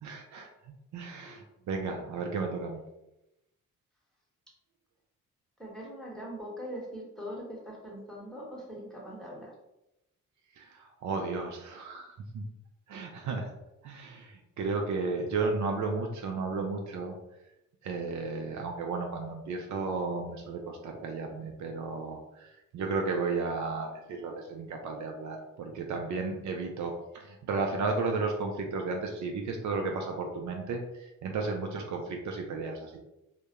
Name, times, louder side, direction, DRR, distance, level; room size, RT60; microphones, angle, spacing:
voice 1, 0.0-0.5 0.9-2.8 10.6-12.4 12.9-13.5 13.8-17.2 17.8-33.0, right 4 dB, 60° right, 2 dB, 0.5 m, -34 dB
voice 2, 5.6-9.5, equal, ahead, -4 dB, 1.1 m, -42 dB
2.2 x 2.1 x 2.8 m, 0.89 s
supercardioid pair, 60°, 33 cm